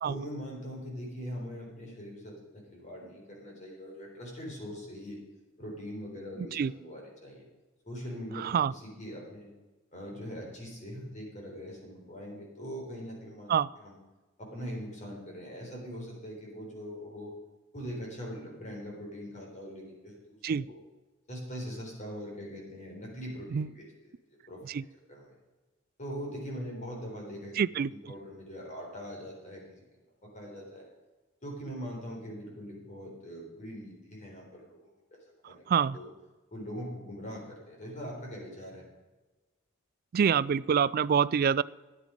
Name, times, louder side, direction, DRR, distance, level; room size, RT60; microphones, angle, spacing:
voice 1, 0.0-5.2 5.6-7.5 7.9-9.5 9.9-14.0 14.4-17.3 17.7-20.4 20.7-20.8 21.3-24.1 24.5-24.6 25.1-25.3 26.0-27.6 27.9-29.8 30.2-30.8 31.4-35.6 35.9-36.1 36.5-38.9, equal, 35° left, -1 dB, 3.9 m, -42 dB
voice 2, 8.4-8.7 13.5-13.7 20.4-20.6 23.5-23.7 24.7-24.8 27.6-27.9 35.4-36.0 40.1-41.6, right 7 dB, 45° right, 20 dB, 0.3 m, -26 dB
13.0 x 9.9 x 5.1 m, 1.2 s
head